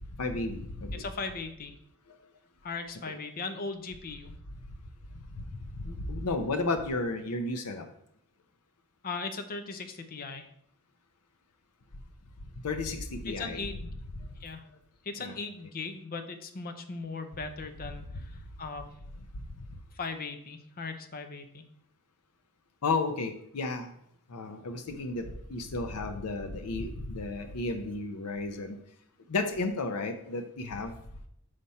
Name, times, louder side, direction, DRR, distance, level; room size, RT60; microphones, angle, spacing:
voice 1, 0.2-1.0 5.8-7.9 12.6-13.7 15.2-15.4 22.8-23.9 24.3-25.2 25.5-28.8 29.3-30.9, left 3 dB, 80° left, 6 dB, 0.6 m, -32 dB
voice 2, 0.9-1.7 2.6-4.3 9.0-10.5 13.2-13.9 14.4-14.6 15.0-18.9 19.9-21.7, left 4 dB, 40° left, 7 dB, 0.6 m, -38 dB
5.6 x 5.0 x 4.2 m, 0.71 s
head